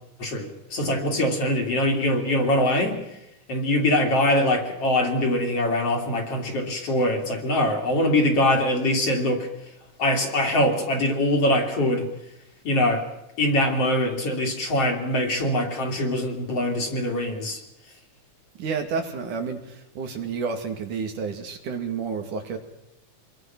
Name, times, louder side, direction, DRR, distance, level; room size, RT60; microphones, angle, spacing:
voice 1, 0.2-3.0 3.5-9.5 10.0-12.1 12.6-13.1 13.4-17.6, left 1 dB, 50° left, 2 dB, 4.0 m, -23 dB
voice 2, 18.6-22.6, right 5 dB, 75° right, 4 dB, 3.8 m, -30 dB
26.0 x 22.0 x 6.1 m, 0.85 s
omnidirectional pair, 3.6 m